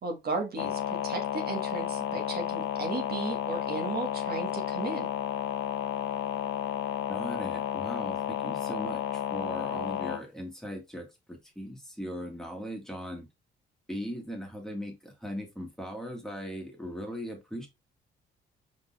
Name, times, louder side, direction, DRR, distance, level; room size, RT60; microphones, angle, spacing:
voice 1, 0.0-5.1, right 3 dB, 50° right, 1.3 m, -35 dB
sound 1, 0.6-10.2, left 11 dB, 70° left, 0.5 m, -32 dB
voice 2, 7.1-13.3 13.9-17.7, equal, ahead, 1.6 m, -39 dB
5.1 x 3.9 x 2.3 m
cardioid pair, 90°, 20 cm